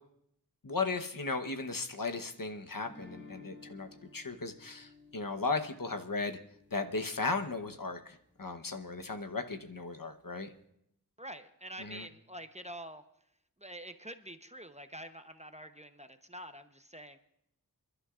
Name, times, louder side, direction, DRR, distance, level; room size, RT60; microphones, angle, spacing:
voice 1, 0.6-6.4 6.7-10.5 11.8-12.1, left 3 dB, 60° left, 6 dB, 1.0 m, -36 dB
sound 1, 2.8-7.8, left 2 dB, 30° left, 6.5 m, -56 dB
voice 2, 11.2-13.0 13.6-17.2, right 1 dB, 20° right, 8 dB, 0.8 m, -46 dB
29.5 x 11.5 x 2.5 m, 0.75 s
wide cardioid pair, 45°, 38 cm